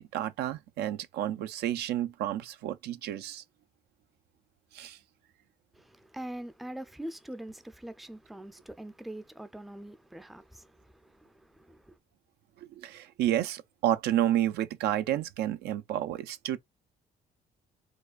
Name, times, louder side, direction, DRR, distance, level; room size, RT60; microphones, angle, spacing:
voice 1, 0.0-3.4 4.7-5.0 12.8-16.6, right 12 dB, 75° right, 0.5 m, -30 dB
voice 2, 5.7-12.0, right 1 dB, ahead, 0.4 m, -43 dB
4.8 x 2.2 x 2.4 m
cardioid pair, 110°, 17 cm